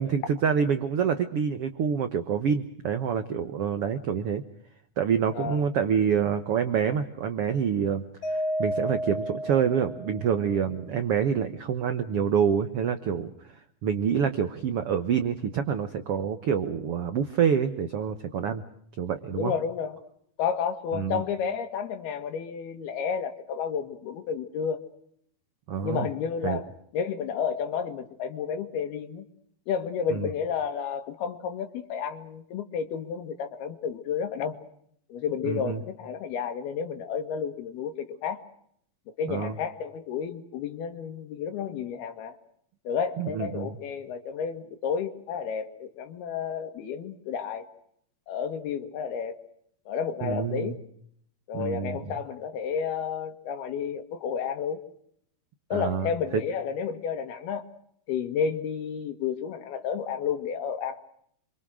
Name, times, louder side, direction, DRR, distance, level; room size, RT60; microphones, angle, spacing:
voice 1, 0.0-4.4 5.0-13.3 13.8-18.6 19.0-19.5 20.9-21.2 25.7-26.1 26.4-26.6 30.1-30.3 35.4-35.8 39.3-39.5 43.2-43.8 50.2-50.8 51.5-52.0 55.7-56.1, right 7 dB, 65° right, 9 dB, 1.4 m, -27 dB
voice 2, 5.3-5.7 19.4-20.0 20.4-24.8 25.8-26.7 26.9-29.3 29.7-34.6 35.1-38.4 39.1-42.4 42.9-47.7 48.3-49.4 49.9-50.8 51.5-54.8 55.7-57.7 58.1-61.0, left 7 dB, 90° left, 7 dB, 3.8 m, -31 dB
Mallet percussion, 8.2-10.5, equal, 35° left, 3.7 m, -31 dB
27.5 x 25.0 x 6.3 m, 0.67 s
omnidirectional pair, 4.3 m